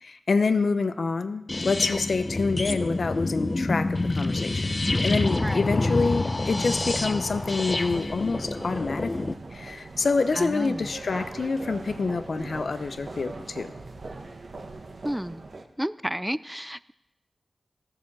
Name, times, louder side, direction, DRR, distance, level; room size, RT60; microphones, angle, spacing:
voice 1, 0.0-13.7, left 4 dB, 65° left, 10 dB, 0.8 m, -27 dB
sound 1, 1.5-9.3, left 2 dB, 30° left, 0.7 m, -27 dB
sound 2, 6.5-15.6, right 3 dB, 60° right, 1.2 m, -41 dB
voice 2, 10.3-10.8 15.0-15.4 15.8-16.9, equal, 5° right, 17 dB, 0.4 m, -31 dB
14.0 x 6.9 x 7.4 m, 0.90 s
wide cardioid pair, 75°, 0 cm